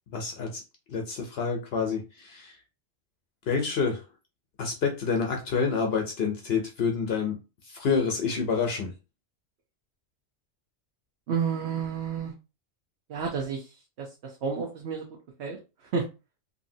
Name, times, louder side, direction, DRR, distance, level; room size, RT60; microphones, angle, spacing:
voice 1, 0.1-0.6 0.9-2.6 3.5-4.0 4.6-7.4 7.6-8.9, left 5 dB, 70° left, 3 dB, 0.8 m, -28 dB
voice 2, 11.3-12.3 13.1-15.1 15.4-16.1, right 6 dB, 70° right, 0 dB, 1.0 m, -31 dB
2.7 x 2.7 x 2.6 m, 0.28 s
omnidirectional pair, 1.1 m